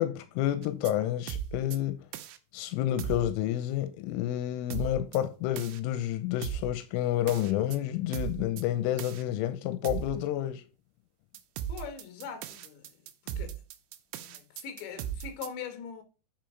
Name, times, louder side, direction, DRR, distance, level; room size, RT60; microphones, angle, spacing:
voice 1, 0.0-2.0 2.5-10.6, left 12 dB, 90° left, 3.2 m, -29 dB
sound 1, 0.6-0.9 1.3-1.8 2.1-2.4 3.0-3.3 4.7-5.2 5.6-5.8 6.4-6.7 7.3-7.8 8.1-8.6 9.0-9.2 9.8-10.2 11.3-15.5, right 10 dB, 85° right, 2.7 m, -37 dB
voice 2, 11.7-13.6 14.2-16.0, left 7 dB, 70° left, 3.6 m, -42 dB
9.0 x 5.3 x 4.6 m
omnidirectional pair, 5.7 m